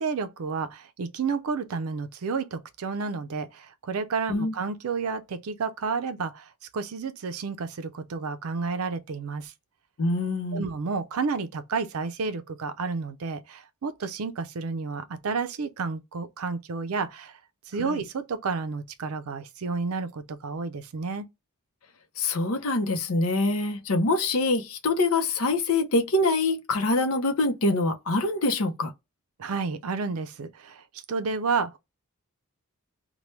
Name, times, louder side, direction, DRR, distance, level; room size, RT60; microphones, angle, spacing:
voice 1, 0.0-6.4 6.7-9.5 10.5-17.3 17.7-21.3 29.4-31.8, right 4 dB, 75° right, 0.5 m, -31 dB
voice 2, 10.0-10.6 17.8-18.0 22.2-28.9, left 2 dB, 70° left, 0.6 m, -25 dB
3.1 x 2.2 x 3.1 m
head